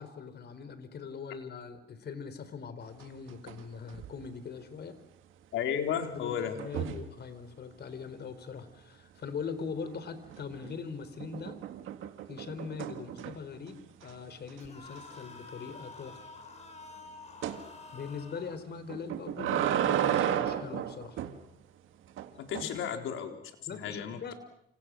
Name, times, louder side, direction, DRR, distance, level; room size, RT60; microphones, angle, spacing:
voice 1, 0.0-5.0 6.1-11.6 12.3-16.3 17.9-21.2 22.7-22.8 23.7-24.3, left 5 dB, 55° left, 12 dB, 4.1 m, -41 dB
sound 1, 3.0-3.6 3.9-4.3 6.6-7.1 10.3-10.7 11.2-13.6 14.0-14.1 14.5-14.6 15.0-15.1 17.4-17.6 18.9-21.4 22.2-22.6, right 10 dB, 85° right, 2.0 m, -33 dB
voice 2, 5.5-6.6 22.4-24.3, left 8 dB, 85° left, 4 dB, 4.2 m, -34 dB
sound 2, 14.6-18.6, left 3 dB, 35° left, 6.7 m, -49 dB
30.0 x 28.0 x 6.4 m, 0.77 s
cardioid pair, 90°, 20 cm